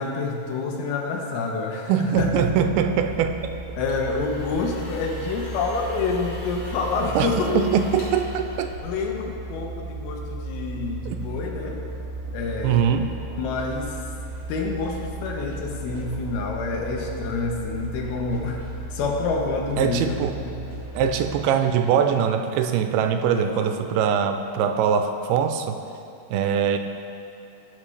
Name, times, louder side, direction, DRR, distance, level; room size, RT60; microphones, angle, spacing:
voice 1, 0.0-2.5 3.7-7.7 8.8-11.9 12.3-12.9 13.4-14.0 14.5-18.6 18.9-20.7 23.4-23.8, left 4 dB, 80° left, 1 dB, 2.7 m, -28 dB
voice 2, 1.9-3.4 7.2-7.3 7.5-8.7 11.1-11.2 12.6-13.1 19.8-20.4 21.0-25.8 26.3-26.8, right 7 dB, 90° right, 7 dB, 2.5 m, -22 dB
sound 1, 2.1-21.4, right 2 dB, 70° right, 1.7 m, -35 dB
sound 2, 3.8-9.4, left 1 dB, 55° left, 1.4 m, -42 dB
sound 3, 12.2-12.4 13.3-14.8 15.6-17.2 18.0-19.5 20.4-21.7, equal, 30° right, 1.7 m, -49 dB
15.5 x 5.2 x 3.2 m, 2.7 s
omnidirectional pair, 4.4 m